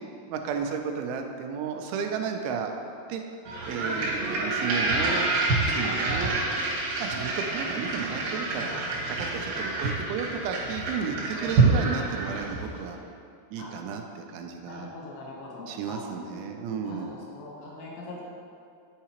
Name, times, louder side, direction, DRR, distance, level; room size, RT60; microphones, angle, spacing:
voice 1, 0.3-2.7 3.1-3.2 3.7-5.3 5.7-6.3 7.0-8.7 9.2-13.0 13.5-14.9 15.7-17.1, right 6 dB, 85° right, 4 dB, 3.0 m, -33 dB
sound 1, 3.5-12.8, right 3 dB, 70° right, 2.2 m, -27 dB
voice 2, 14.6-16.0 16.8-18.2, left 2 dB, 75° left, -4 dB, 3.3 m, -42 dB
9.8 x 4.7 x 2.9 m, 2.4 s
omnidirectional pair, 5.4 m